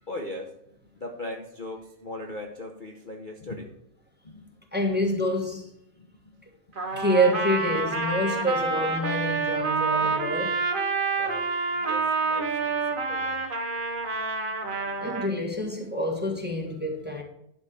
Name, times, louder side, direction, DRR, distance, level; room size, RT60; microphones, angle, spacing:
voice 1, 0.0-3.7 4.2-4.5 4.8-5.0 6.0-6.3 6.9-7.1 11.2-13.4, left 2 dB, 35° left, 1.0 m, -39 dB
voice 2, 4.7-5.7 6.9-10.6 15.0-17.2, equal, 5° right, 1.4 m, -27 dB
Trumpet, 6.8-15.3, right 4 dB, 35° right, 1.2 m, -28 dB
11.5 x 4.4 x 6.7 m
omnidirectional pair, 1.7 m